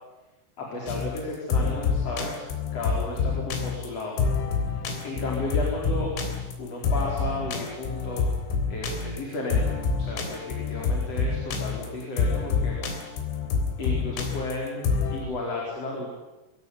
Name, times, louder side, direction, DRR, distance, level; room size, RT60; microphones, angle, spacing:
voice 1, 0.6-2.4 2.7-4.2 5.0-6.1 6.6-8.3 8.7-12.8 13.8-16.1, left 2 dB, 30° left, -2 dB, 5.4 m, -33 dB
sound 1, 0.9-15.2, left 4 dB, 80° left, 6.1 m, -27 dB
23.5 x 19.0 x 9.6 m, 1.0 s
omnidirectional pair, 5.6 m